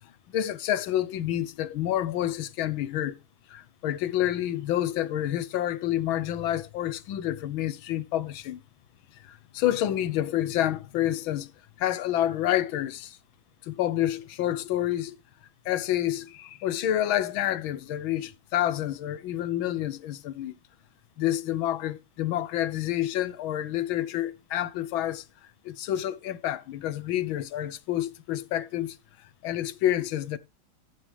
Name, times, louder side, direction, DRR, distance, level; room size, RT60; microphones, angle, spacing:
voice 1, 0.3-3.2 3.5-8.6 9.2-11.5 11.8-13.2 13.6-15.2 15.6-20.5 21.2-25.2 25.6-29.0 29.4-30.4, left 12 dB, 85° left, 1.6 m, -28 dB
14.5 x 7.6 x 3.3 m
omnidirectional pair, 2.2 m